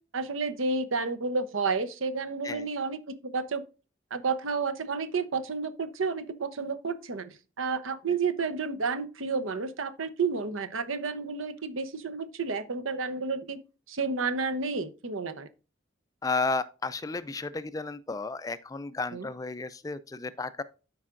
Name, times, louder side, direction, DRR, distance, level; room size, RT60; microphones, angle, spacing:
voice 1, 0.1-3.6 4.1-13.6 13.9-15.5 19.1-19.3, right 4 dB, 80° right, 0.8 m, -31 dB
voice 2, 16.2-20.6, left 3 dB, 15° left, 0.3 m, -33 dB
12.5 x 4.8 x 2.5 m
head